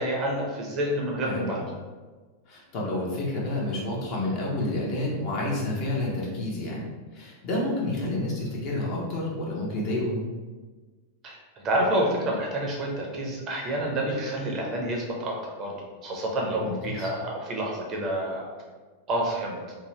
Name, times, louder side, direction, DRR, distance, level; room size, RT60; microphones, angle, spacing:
voice 1, 0.0-1.7 11.2-11.4 11.6-15.7 16.0-18.5 19.1-19.6, right 1 dB, 30° right, -1 dB, 0.6 m, -28 dB
voice 2, 2.5-6.8 7.1-10.2 16.6-17.1, left 1 dB, 40° left, -4 dB, 0.8 m, -29 dB
2.8 x 2.3 x 3.1 m, 1.3 s
figure-of-eight pair, 90°, 0 cm